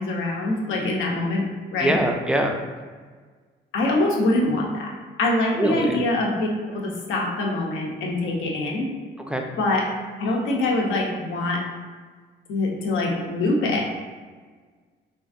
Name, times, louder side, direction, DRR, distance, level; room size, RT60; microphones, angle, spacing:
voice 1, 0.0-2.0 3.7-4.9 5.2-8.9 9.6-9.9 10.2-11.6 12.5-13.9, left 2 dB, 80° left, -1 dB, 0.6 m, -24 dB
voice 2, 1.8-2.6 5.5-6.0 9.3-9.4, right 1 dB, 5° right, 2 dB, 0.3 m, -23 dB
3.3 x 2.4 x 2.4 m, 1.5 s
cardioid pair, 90°, 20 cm